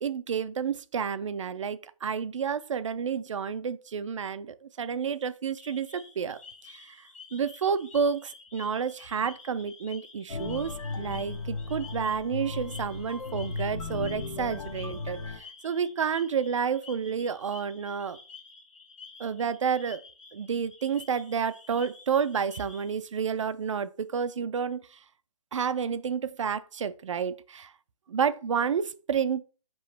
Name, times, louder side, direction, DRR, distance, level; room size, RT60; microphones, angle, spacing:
voice 1, 0.0-6.4 6.7-6.8 7.3-15.2 15.6-18.2 19.2-20.0 20.3-24.8 25.5-27.7 28.1-29.4, right 6 dB, 60° right, 0.4 m, -30 dB
sound 1, 5.5-22.9, left 5 dB, 60° left, 1.0 m, -50 dB
sound 2, 10.3-15.4, left 3 dB, 85° left, 0.7 m, -36 dB
4.6 x 3.0 x 3.2 m
hypercardioid pair, 170°, 18 cm